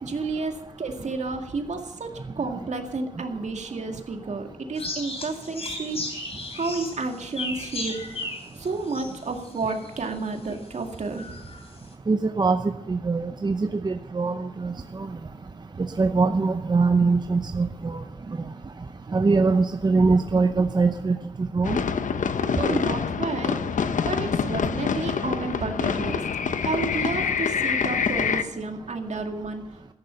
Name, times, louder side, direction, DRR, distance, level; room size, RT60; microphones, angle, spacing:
voice 1, 0.0-6.0 6.5-11.5 22.4-23.6 24.1-26.2 26.6-29.8, right 3 dB, 65° right, 4 dB, 2.1 m, -31 dB
sound 1, 4.8-10.0 10.5-10.6 11.1-11.6, left 2 dB, 50° left, 3.2 m, -35 dB
voice 2, 12.1-12.6 12.9-15.1 16.0-18.0 19.1-21.2 21.5-21.8, right 4 dB, 35° right, 8 dB, 0.7 m, -22 dB
sound 2, 21.6-28.4, left 6 dB, 80° left, 0.8 m, -26 dB
13.5 x 11.0 x 6.9 m, 0.97 s
wide cardioid pair, 130°, 13 cm